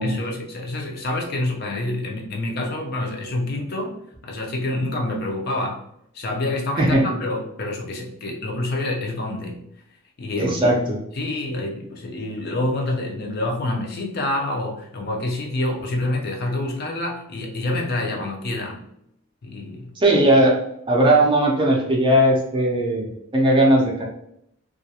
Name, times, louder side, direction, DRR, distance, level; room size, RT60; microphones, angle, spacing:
voice 1, 0.0-5.8 6.1-9.6 10.2-10.8 11.1-18.8 19.4-19.9, left 2 dB, 45° left, 0 dB, 0.4 m, -27 dB
voice 2, 10.4-11.0 20.0-20.6 20.9-23.1 23.3-24.0, right 1 dB, 20° right, -1 dB, 0.4 m, -18 dB
2.3 x 2.0 x 2.7 m, 0.74 s
head